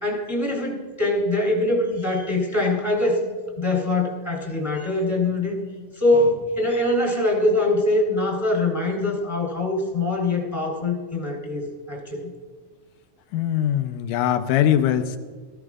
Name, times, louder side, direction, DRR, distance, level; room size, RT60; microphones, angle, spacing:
voice 1, 0.0-3.3 3.6-5.6 5.9-12.3, left 2 dB, 5° left, -1 dB, 2.8 m, -23 dB
voice 2, 13.3-15.2, left 10 dB, 80° left, 9 dB, 2.1 m, -21 dB
19.5 x 15.0 x 2.4 m, 1.5 s
omnidirectional pair, 4.0 m